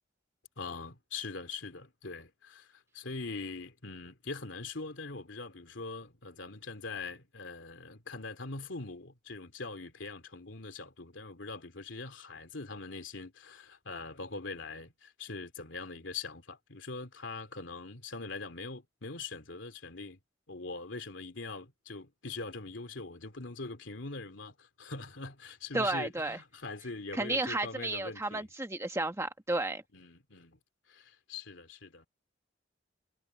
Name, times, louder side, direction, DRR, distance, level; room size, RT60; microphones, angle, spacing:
voice 1, 0.6-20.2 20.5-28.5 29.9-30.6 30.9-32.1, left 3 dB, 80° left, 2.8 m, -42 dB
voice 2, 25.7-26.4 27.1-29.8, right 2 dB, 15° right, 1.1 m, -32 dB
head